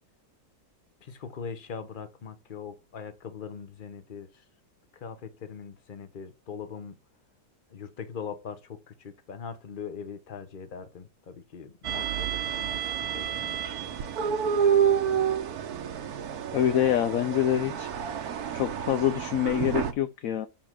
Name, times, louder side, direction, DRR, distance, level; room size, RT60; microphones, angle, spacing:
voice 1, 1.0-4.4 4.9-7.0 7.7-14.0, left 6 dB, 35° left, 1.0 m, -41 dB
sound 1, 11.8-19.9, right 8 dB, 70° right, 1.4 m, -29 dB
voice 2, 16.5-17.9 18.5-20.5, left 11 dB, 70° left, 0.9 m, -26 dB
7.5 x 3.7 x 6.2 m
omnidirectional pair, 1.7 m